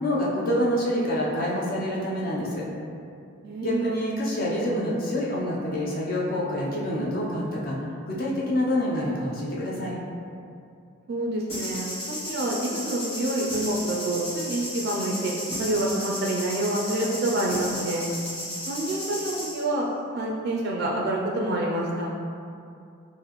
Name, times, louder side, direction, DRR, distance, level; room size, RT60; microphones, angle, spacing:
voice 1, 0.0-2.6 3.6-7.8 8.1-10.0, left 1 dB, 45° left, -5 dB, 0.5 m, -27 dB
voice 2, 3.4-3.9 11.1-15.3 15.6-18.1 18.7-19.9 20.1-22.1, right 1 dB, 50° right, -2 dB, 0.3 m, -27 dB
sound 1, 11.5-19.6, equal, 30° left, 1.5 m, -34 dB
4.0 x 2.5 x 3.0 m, 2.5 s
head